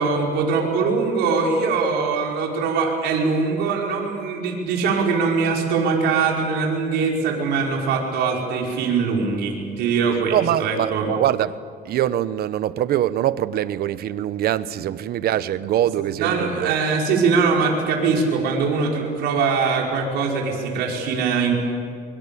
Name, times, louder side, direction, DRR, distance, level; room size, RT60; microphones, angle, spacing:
voice 1, 0.0-11.1 16.2-21.5, right 5 dB, 85° right, 5.3 m, -22 dB
voice 2, 10.3-11.5 11.8-16.7, right 12 dB, 65° right, 1.0 m, -23 dB
25.0 x 24.0 x 8.6 m
cardioid pair, 110°, 17 cm